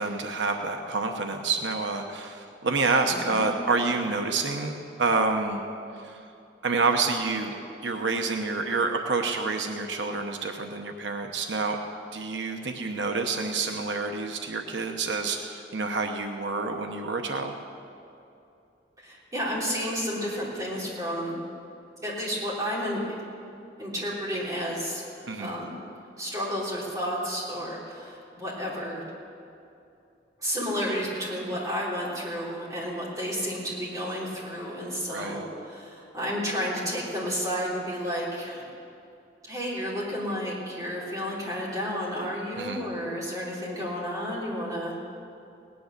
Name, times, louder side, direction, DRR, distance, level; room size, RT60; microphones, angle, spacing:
voice 1, 0.0-5.6 6.0-6.2 6.6-7.5 7.8-11.8 12.1-17.5 25.3-25.5 35.1-35.4 42.6-42.8, right 3 dB, 90° right, 4 dB, 1.0 m, -28 dB
voice 2, 3.1-3.5 19.0-21.4 22.0-23.0 23.8-25.7 26.2-29.0 30.4-38.7 39.4-45.0, equal, 20° right, -6 dB, 3.6 m, -31 dB
17.5 x 10.0 x 6.6 m, 2.6 s
head